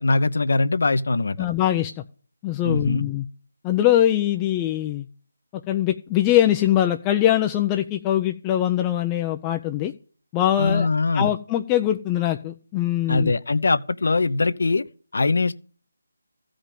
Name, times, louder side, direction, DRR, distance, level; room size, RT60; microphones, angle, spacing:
voice 1, 0.0-1.5 2.6-3.1 10.6-11.3 13.1-14.8 15.1-15.5, left 3 dB, 65° left, 0.8 m, -22 dB
voice 2, 1.4-1.9 2.4-3.3 3.6-5.1 5.5-9.9 10.3-10.9 11.1-13.3, left 12 dB, 15° left, 0.5 m, -22 dB
14.5 x 5.2 x 9.0 m
figure-of-eight pair, 165°, 0 cm